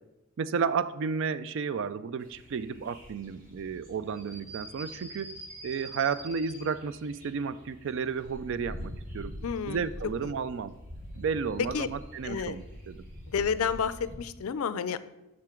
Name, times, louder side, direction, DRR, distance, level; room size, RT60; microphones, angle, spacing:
voice 1, 0.4-5.4 5.6-9.3 9.7-10.7 11.1-13.0, right 6 dB, 60° right, 15 dB, 0.3 m, -32 dB
sound 1, 2.2-14.2, equal, 40° right, 1.8 m, -45 dB
voice 2, 9.4-9.8 10.2-10.3 11.6-11.9 12.2-12.6 13.3-15.0, left 6 dB, 80° left, 15 dB, 0.4 m, -30 dB
7.4 x 6.1 x 3.7 m, 0.99 s
head